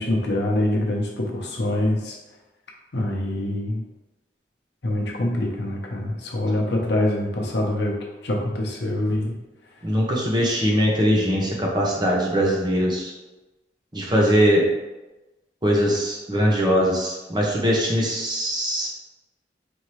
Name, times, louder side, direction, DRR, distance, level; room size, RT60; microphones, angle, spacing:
voice 1, 0.0-2.2 2.9-3.8 4.8-8.0 8.2-9.3, left 1 dB, 75° left, -1 dB, 0.8 m, -24 dB
voice 2, 9.8-13.1 13.9-14.7 15.6-18.9, equal, 25° right, -2 dB, 0.7 m, -21 dB
4.5 x 2.7 x 3.1 m, 1.1 s
head